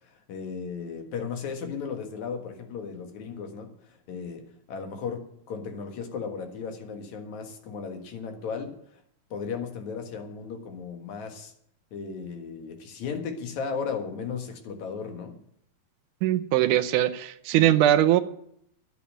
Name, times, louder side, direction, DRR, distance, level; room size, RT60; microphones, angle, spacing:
voice 1, 0.0-8.8 9.3-11.5 11.9-15.4, left 5 dB, 60° left, 5 dB, 2.7 m, -35 dB
voice 2, 16.2-18.2, right 12 dB, 75° right, 10 dB, 2.0 m, -21 dB
11.0 x 8.7 x 8.8 m, 0.70 s
omnidirectional pair, 4.2 m